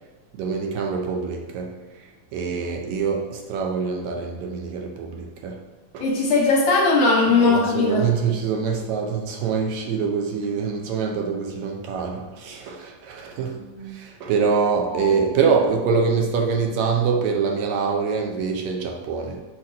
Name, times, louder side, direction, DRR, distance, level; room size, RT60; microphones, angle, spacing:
voice 1, 0.3-5.6 5.9-6.1 7.3-13.6 13.8-19.4, right 5 dB, 75° right, 2 dB, 1.8 m, -25 dB
voice 2, 6.0-8.0 13.6-13.9 14.9-15.1, left 3 dB, 65° left, -3 dB, 1.9 m, -19 dB
6.3 x 2.9 x 5.2 m, 1.2 s
omnidirectional pair, 3.4 m